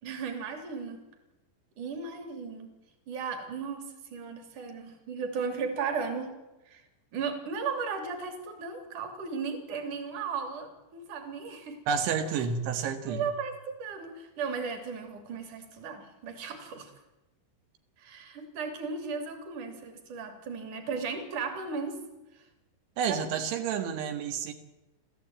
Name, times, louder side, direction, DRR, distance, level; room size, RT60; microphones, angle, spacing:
voice 1, 0.0-1.0 1.8-2.7 3.1-6.3 6.7-6.8 7.1-11.8 13.1-16.9 18.0-22.0 23.1-23.2, right 5 dB, 50° right, 5 dB, 4.1 m, -36 dB
voice 2, 11.9-13.3 23.0-24.5, right 6 dB, 85° right, 6 dB, 4.1 m, -30 dB
29.5 x 14.0 x 8.9 m, 1.0 s
omnidirectional pair, 5.1 m